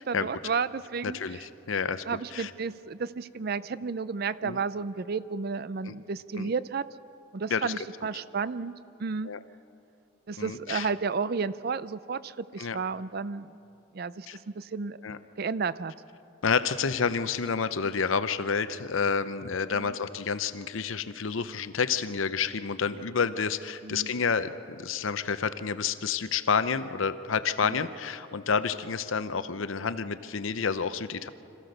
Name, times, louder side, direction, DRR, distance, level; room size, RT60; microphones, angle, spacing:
voice 1, 0.0-1.5 2.1-6.9 7.3-8.7 9.0-9.3 10.3-13.6 13.9-15.0 15.4-15.9 19.7-20.0 23.8-24.1 27.6-27.9, right 5 dB, 50° right, 16 dB, 0.5 m, -32 dB
voice 2, 1.0-2.0 2.3-2.5 4.4-4.6 5.8-5.9 6.4-6.5 7.5-7.7 9.3-9.4 10.4-10.9 12.6-12.8 14.3-14.4 15.0-15.2 16.4-24.5 24.8-31.3, left 5 dB, 80° left, 13 dB, 0.7 m, -29 dB
26.0 x 15.0 x 6.6 m, 2.8 s
head